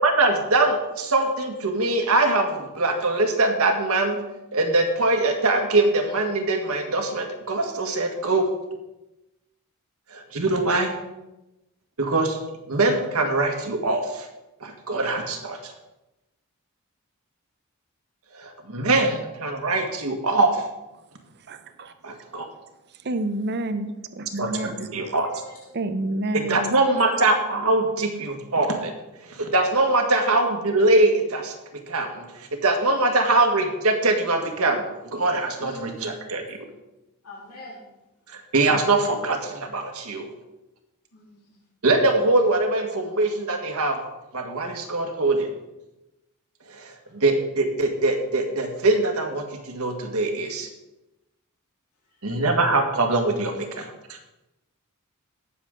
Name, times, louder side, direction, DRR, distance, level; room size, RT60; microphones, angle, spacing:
voice 1, 0.0-4.2 4.5-8.5 10.1-10.9 12.0-12.4 12.7-14.3 14.6-15.7 18.3-20.6 22.0-22.5 24.4-24.5 24.9-25.3 26.3-28.9 29.2-31.5 31.9-34.9 35.1-36.6 38.3-40.3 41.8-44.0 44.3-45.5 46.7-50.7 52.2-54.2, right 2 dB, 75° right, 1.7 m, -23 dB
voice 2, 21.5-21.9 22.4-22.5 23.0-25.1 25.7-26.8, right 2 dB, 50° right, 0.7 m, -29 dB
voice 3, 24.9-25.5 26.8-27.0 35.6-36.2 37.2-37.8 41.1-41.6, left 1 dB, 80° left, 3.2 m, -43 dB
18.5 x 7.1 x 3.8 m
head